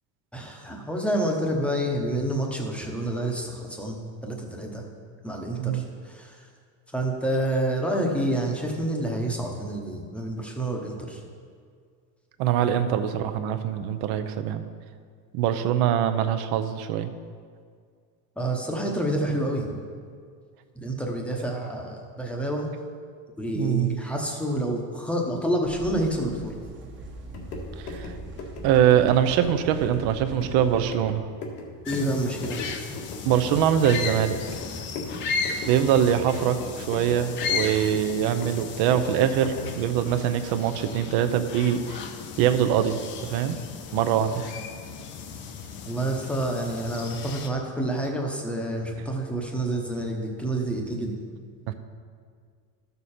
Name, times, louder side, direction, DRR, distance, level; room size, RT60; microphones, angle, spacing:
voice 1, 0.3-4.8 5.2-6.3 6.9-11.2 18.4-19.8 20.8-22.7 23.4-26.5 31.9-32.6 45.9-51.2, right 1 dB, ahead, 0 dB, 0.9 m, -28 dB
voice 2, 12.4-14.6 15.3-17.1 23.5-23.9 27.8-28.1 28.6-31.3 33.2-34.4 35.7-42.0 42.4-43.6 43.9-44.4 51.7-51.8, right 9 dB, 50° right, 9 dB, 0.7 m, -23 dB
sound 1, 25.6-30.8, right 2 dB, 25° right, 1.0 m, -43 dB
sound 2, 27.2-39.8, left 3 dB, 85° left, 1.9 m, -39 dB
sound 3, 31.9-47.5, left 5 dB, 25° left, 0.4 m, -35 dB
12.5 x 6.8 x 4.3 m, 2.1 s
supercardioid pair, 150°, 49 cm